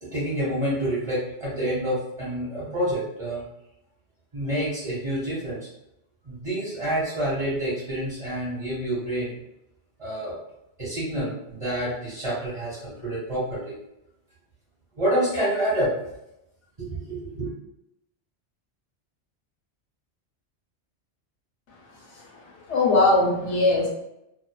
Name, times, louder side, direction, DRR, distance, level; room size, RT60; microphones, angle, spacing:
voice 1, 0.0-3.4 4.3-5.7 6.2-9.3 10.0-10.3 10.8-13.7 15.0-15.9 16.8-17.5, right 1 dB, 30° right, -10 dB, 1.0 m, -28 dB
voice 2, 21.7-23.9, left 2 dB, 80° left, -3 dB, 1.1 m, -22 dB
2.4 x 2.4 x 2.2 m, 0.85 s
omnidirectional pair, 1.1 m